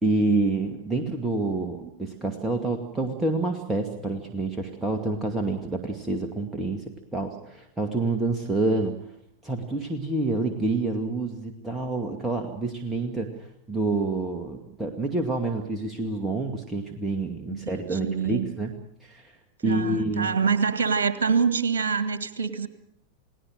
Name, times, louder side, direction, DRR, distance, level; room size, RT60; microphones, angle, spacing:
voice 1, 0.0-9.0 9.4-18.8 19.0-19.3 19.6-20.3, right 2 dB, 10° right, 3 dB, 2.2 m, -28 dB
voice 2, 17.5-18.4 19.6-22.7, right 5 dB, 65° right, 12 dB, 1.8 m, -25 dB
29.0 x 18.5 x 6.6 m, 0.73 s
figure-of-eight pair, 90°, 0 cm